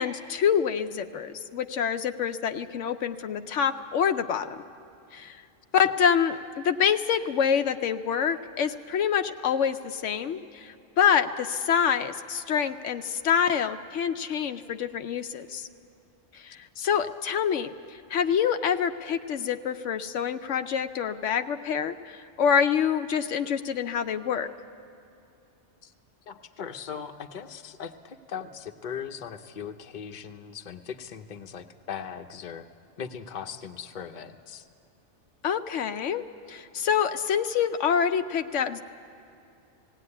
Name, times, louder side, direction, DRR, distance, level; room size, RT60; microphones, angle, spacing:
voice 1, 0.0-4.6 5.1-5.4 5.7-15.7 16.3-24.5 35.4-36.2 36.5-38.8, left 7 dB, 80° left, 8 dB, 1.0 m, -26 dB
voice 2, 26.3-32.7 33.0-34.7, left 7 dB, 45° left, 6 dB, 0.9 m, -39 dB
17.5 x 17.5 x 9.8 m, 2.7 s
omnidirectional pair, 1.2 m